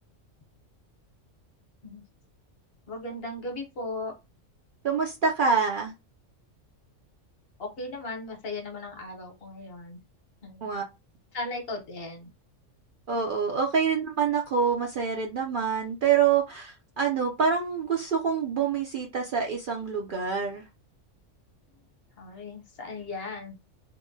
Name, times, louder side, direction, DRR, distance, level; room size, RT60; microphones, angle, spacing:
voice 1, 2.9-4.1 7.6-10.0 10.4-10.7 11.3-12.3 22.2-23.6, left 2 dB, 55° left, 3 dB, 1.0 m, -37 dB
voice 2, 4.8-5.9 10.6-10.8 13.1-20.7, right 6 dB, 60° right, 0 dB, 0.6 m, -26 dB
3.5 x 2.1 x 2.6 m, 0.24 s
omnidirectional pair, 1.3 m